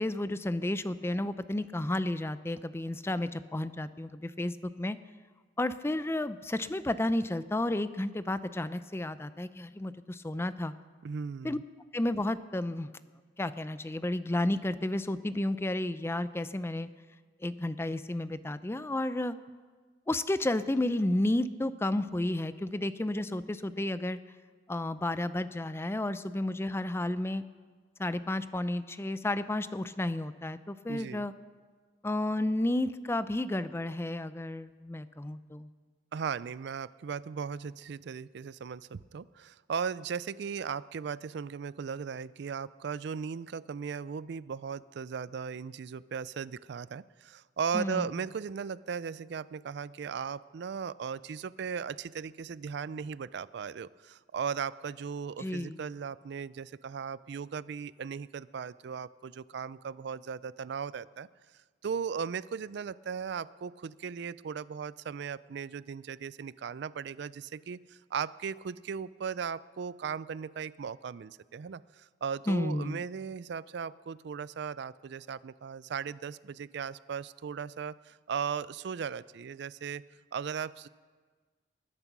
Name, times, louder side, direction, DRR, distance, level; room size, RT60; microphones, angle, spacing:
voice 1, 0.0-5.0 5.6-10.7 11.4-11.6 11.9-12.9 13.4-16.9 17.4-19.4 20.1-24.2 24.7-27.4 28.0-31.3 32.0-35.7 47.7-48.1 55.4-55.8 72.5-73.0, left 1 dB, 15° left, 14 dB, 0.5 m, -32 dB
voice 2, 11.0-11.6 30.9-31.3 36.1-61.3 61.8-80.0 80.3-80.9, right 6 dB, 65° right, 18 dB, 0.4 m, -37 dB
20.0 x 11.0 x 6.0 m, 1.5 s
head